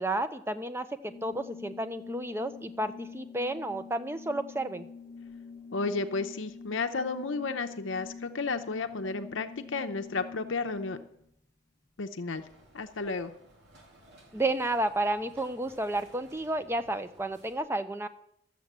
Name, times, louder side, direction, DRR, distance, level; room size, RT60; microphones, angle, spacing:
voice 1, 0.0-4.9 14.3-18.1, right 1 dB, 10° right, 10 dB, 0.6 m, -31 dB
Organ, 1.0-11.3, left 5 dB, 15° left, 0.8 m, -46 dB
voice 2, 5.7-11.0 12.0-12.4 12.7-13.3, left 3 dB, 70° left, 8 dB, 0.7 m, -32 dB
sound 1, 12.3-17.6, right 1 dB, 60° right, 2.7 m, -58 dB
12.5 x 7.5 x 7.4 m, 0.76 s
head